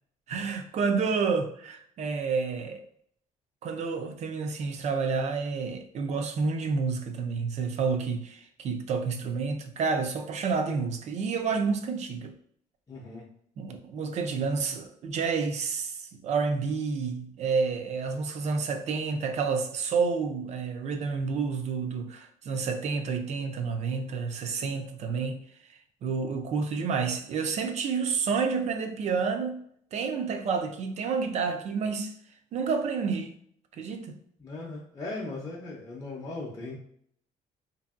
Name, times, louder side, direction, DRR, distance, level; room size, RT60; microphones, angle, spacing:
voice 1, 0.3-2.8 3.6-12.3 13.6-25.4 26.0-29.6 29.9-32.1 32.5-33.3 33.8-34.1, right 5 dB, 55° right, 0.4 m, -29 dB
voice 2, 12.9-13.3 34.4-36.8, left 2 dB, 20° left, 0.6 m, -38 dB
2.7 x 2.6 x 2.4 m
cardioid pair, 110°, 14 cm